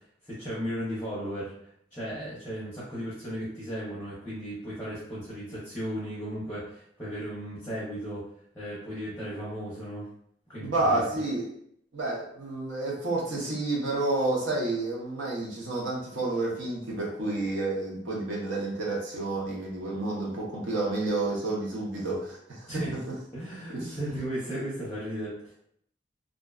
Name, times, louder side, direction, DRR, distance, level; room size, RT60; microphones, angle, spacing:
voice 1, 0.2-8.3 8.5-10.1 10.5-11.2 22.7-23.0 23.3-25.5, equal, 10° left, -9 dB, 0.6 m, -35 dB
voice 2, 10.6-11.5 11.9-22.7 23.7-24.0, right 2 dB, 90° right, -4 dB, 0.8 m, -30 dB
2.5 x 2.2 x 2.3 m, 0.70 s
head